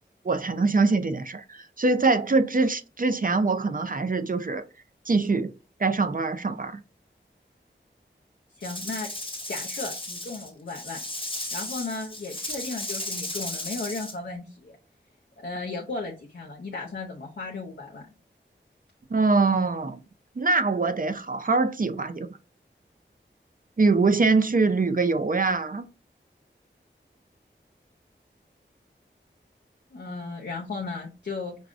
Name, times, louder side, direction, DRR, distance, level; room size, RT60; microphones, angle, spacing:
voice 1, 0.2-4.6 5.1-5.5 5.8-6.8 19.1-20.0 20.4-22.3 23.8-25.8, right 3 dB, 45° right, 0.5 m, -23 dB
voice 2, 8.6-9.1 9.5-11.0 11.5-14.8 15.4-18.1 29.9-31.6, left 3 dB, 60° left, 0.6 m, -35 dB
Rattle / Rattle (instrument), 8.6-14.2, left 1 dB, 25° left, 0.9 m, -35 dB
4.7 x 2.2 x 2.4 m
wide cardioid pair, 45°, 20 cm